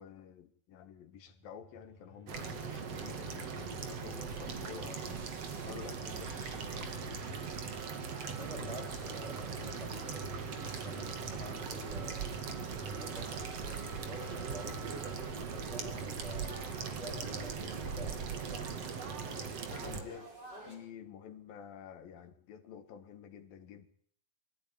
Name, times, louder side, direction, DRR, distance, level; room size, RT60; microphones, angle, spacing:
voice 1, 0.0-5.2 5.7-7.5 19.7-20.3 20.6-23.9, left 8 dB, 80° left, 3.5 m, -50 dB
sound 1, 1.1-5.7 6.1-17.6, right 3 dB, 70° right, 5.9 m, -54 dB
sound 2, 2.3-20.0, right 5 dB, 50° right, 2.9 m, -40 dB
sound 3, 8.0-20.8, right 1 dB, 25° right, 5.5 m, -54 dB
voice 2, 8.4-12.3 12.7-16.5 16.9-18.6, right 1 dB, 10° left, 6.2 m, -47 dB
23.0 x 14.5 x 9.3 m
omnidirectional pair, 4.1 m